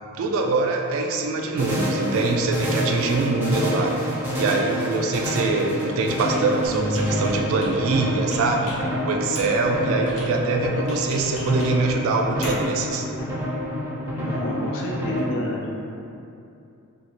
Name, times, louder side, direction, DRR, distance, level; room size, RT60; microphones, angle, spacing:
voice 1, 0.2-3.9 4.3-8.7 9.0-13.1, right 3 dB, 65° right, 2 dB, 0.3 m, -23 dB
sound 1, 1.6-15.2, equal, 10° right, 0.5 m, -28 dB
Computer keyboard, 6.6-13.3, left 1 dB, 80° left, 0.8 m, -40 dB
Bass guitar, 6.7-12.9, equal, 25° left, 0.7 m, -36 dB
voice 2, 14.2-15.7, left 1 dB, 60° left, -3 dB, 0.4 m, -30 dB
2.6 x 2.4 x 2.9 m, 2.7 s
head